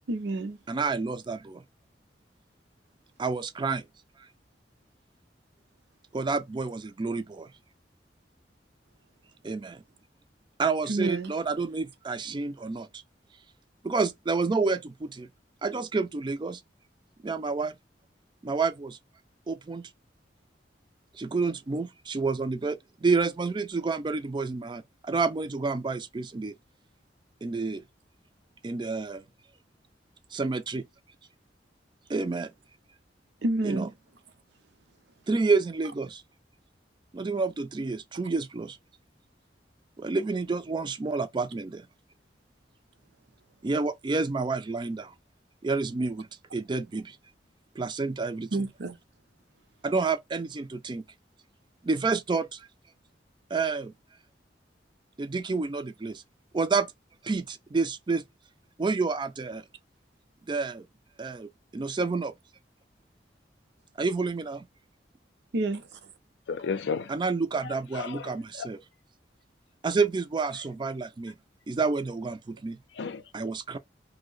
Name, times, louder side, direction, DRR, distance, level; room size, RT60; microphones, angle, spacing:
voice 1, 0.1-0.6 10.9-11.3 33.4-33.9 48.5-49.0 65.5-65.9, right 2 dB, 75° right, 0.6 m, -29 dB
voice 2, 0.7-1.6 3.2-3.9 6.1-7.5 9.4-9.8 10.6-13.0 13.8-15.3 15.6-16.6 17.2-17.8 18.4-19.0 19.5-19.9 21.1-26.5 27.4-27.8 28.6-29.2 30.3-30.8 32.1-32.5 33.6-33.9 35.3-36.2 37.1-38.8 40.0-41.9 43.6-45.1 45.6-47.2 47.8-48.5 49.8-51.0 51.8-52.7 53.5-53.9 55.2-56.2 56.5-56.9 57.2-58.2 58.8-59.6 60.5-60.8 61.2-62.3 64.0-64.7 67.1-68.8 69.8-71.3 71.7-72.8 73.3-73.8, right 4 dB, 25° right, 0.4 m, -29 dB
voice 3, 66.5-67.1 67.6-68.7 72.9-73.3, left 5 dB, 75° left, 0.4 m, -34 dB
2.7 x 2.1 x 3.8 m
head